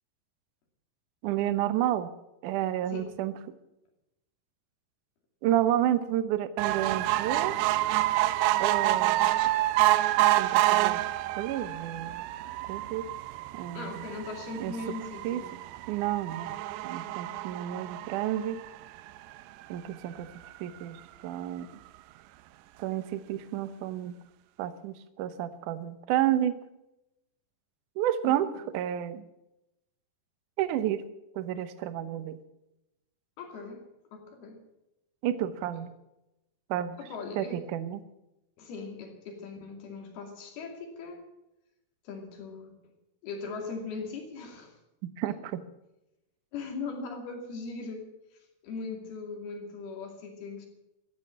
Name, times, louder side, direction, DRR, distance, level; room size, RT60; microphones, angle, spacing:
voice 1, 1.2-2.1 2.4-3.4 5.4-7.6 8.6-9.3 10.2-11.0 11.4-12.2 12.7-13.1 13.5-14.1 14.6-14.8 15.2-15.4 15.9-16.6 16.8-18.6 19.7-21.7 22.8-24.2 24.6-26.6 28.0-29.2 30.6-31.0 31.3-32.4 35.2-35.9 36.7-37.0 37.4-38.0 45.0-45.6, right 12 dB, 70° right, 12 dB, 2.1 m, -30 dB
sound 1, 6.6-19.2 19.7-19.8 20.1-20.2 20.5-20.6, right 16 dB, 90° right, 2.7 m, -28 dB
voice 2, 13.7-15.5 28.3-28.4 33.4-33.9 34.1-34.6 37.0-37.6 38.6-41.3 42.0-42.8 43.2-44.7 46.5-48.0 48.6-50.7, left 4 dB, 75° left, 2 dB, 4.4 m, -39 dB
15.0 x 10.5 x 8.6 m, 0.91 s
omnidirectional pair, 4.5 m